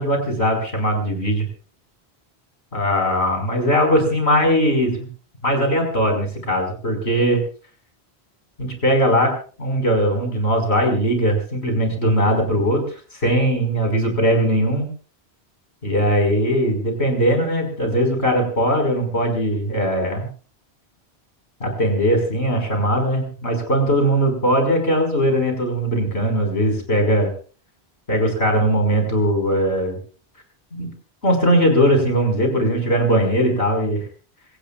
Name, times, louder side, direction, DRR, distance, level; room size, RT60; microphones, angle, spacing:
voice 1, 0.0-1.5 2.7-5.1 5.4-7.4 8.6-9.3 9.6-12.8 13.2-14.9 15.8-20.3 21.6-27.3 28.1-30.0 30.7-30.9 31.2-34.0, equal, 85° left, 3 dB, 5.3 m, -19 dB
25.5 x 17.5 x 2.4 m, 0.39 s
omnidirectional pair, 1.1 m